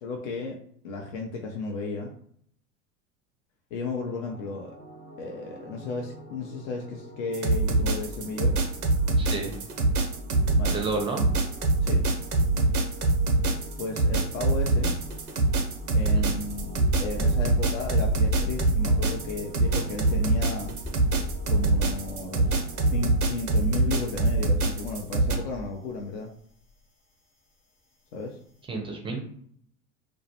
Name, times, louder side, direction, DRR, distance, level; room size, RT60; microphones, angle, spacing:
voice 1, 0.0-0.6 0.8-2.1 3.7-4.8 5.2-8.6 10.6-10.8 11.8-12.0 13.8-14.9 15.9-20.7 21.5-22.6 22.9-26.3 28.1-28.4, left 3 dB, 60° left, 1 dB, 0.5 m, -34 dB
sound 1, 3.8-23.2, right 1 dB, 85° left, 1.1 m, -46 dB
sound 2, 7.3-25.4, right 2 dB, 90° right, 0.5 m, -24 dB
voice 2, 9.2-9.5 10.7-11.3 16.1-16.4 28.7-29.2, right 3 dB, 15° right, 1 dB, 0.4 m, -31 dB
sound 3, 11.5-12.3 12.6-26.1 26.4-26.6, left 1 dB, 30° left, 0.8 m, -39 dB
2.2 x 2.1 x 2.8 m, 0.64 s
figure-of-eight pair, 75°, 43 cm